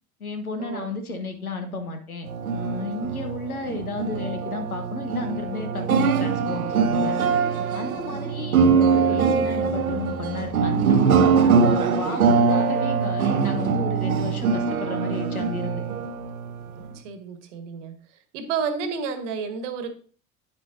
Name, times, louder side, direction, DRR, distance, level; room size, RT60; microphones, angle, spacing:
voice 1, 0.2-7.2 7.7-15.8, left 3 dB, 80° left, 6 dB, 1.2 m, -32 dB
sound 1, 2.3-17.0, right 5 dB, 80° right, 0.7 m, -22 dB
voice 2, 16.9-18.0 18.3-19.9, right 6 dB, 55° right, 9 dB, 1.3 m, -31 dB
9.2 x 8.1 x 2.6 m, 0.43 s
figure-of-eight pair, 70°, 42 cm